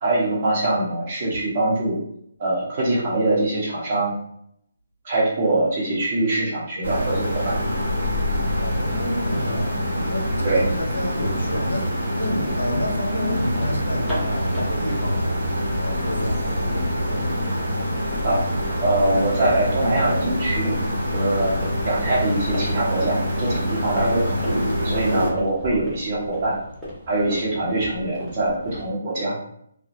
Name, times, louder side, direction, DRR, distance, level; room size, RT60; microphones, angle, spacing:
voice 1, 0.0-2.0 2.4-4.1 5.0-7.6 10.4-10.6 18.2-18.4 18.8-20.7 21.1-21.5 21.8-24.4 24.8-26.6 27.1-29.4, right 2 dB, 40° right, -5 dB, 0.9 m, -23 dB
sound 1, 6.8-25.3, equal, 70° right, 1.0 m, -25 dB
voice 2, 8.5-17.2, left 1 dB, 90° left, 2 dB, 0.5 m, -30 dB
sound 2, 13.4-28.9, equal, ahead, 0.8 m, -37 dB
2.1 x 2.1 x 2.8 m, 0.72 s
figure-of-eight pair, 145°, 0 cm